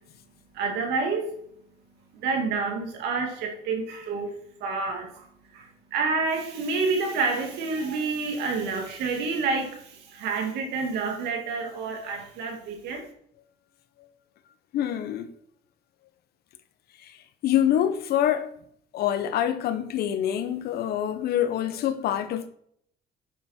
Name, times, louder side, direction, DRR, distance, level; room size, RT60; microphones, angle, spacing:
voice 1, 0.5-1.4 2.1-13.1, right 4 dB, 85° right, 2.5 m, -29 dB
voice 2, 14.7-15.3 17.0-17.2 17.4-18.5 18.9-22.5, left 10 dB, 70° left, 1.1 m, -25 dB
9.2 x 6.9 x 4.5 m
cardioid pair, 110°, 17 cm